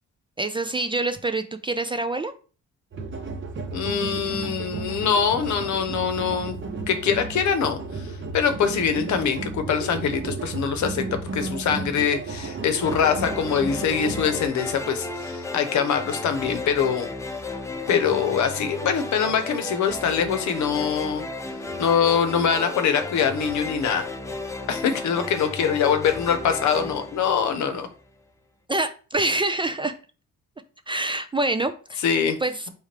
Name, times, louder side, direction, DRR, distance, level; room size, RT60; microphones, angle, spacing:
voice 1, 0.4-2.3 28.7-29.9 30.9-32.0 32.4-32.7, right 2 dB, 15° right, 9 dB, 0.3 m, -26 dB
sound 1, 2.9-14.5, right 3 dB, 40° right, 0.8 m, -33 dB
voice 2, 3.7-6.5 6.9-17.1 17.9-21.2 21.8-24.1 24.7-27.9 32.0-32.4, left 7 dB, 70° left, 8 dB, 0.9 m, -23 dB
sound 2, 12.8-28.0, left 2 dB, 10° left, 0.7 m, -34 dB
4.4 x 3.4 x 3.3 m, 0.38 s
cardioid pair, 90°, 30 cm